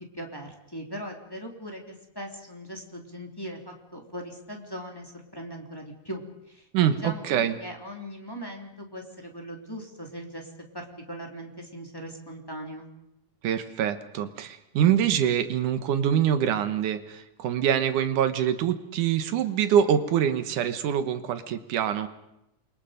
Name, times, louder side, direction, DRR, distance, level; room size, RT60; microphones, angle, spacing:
voice 1, 0.1-6.7 7.0-12.9, equal, 5° left, 1 dB, 2.9 m, -40 dB
voice 2, 6.7-7.5 13.4-22.1, right 9 dB, 70° right, 10 dB, 2.7 m, -25 dB
28.5 x 23.5 x 5.2 m, 0.85 s
omnidirectional pair, 3.8 m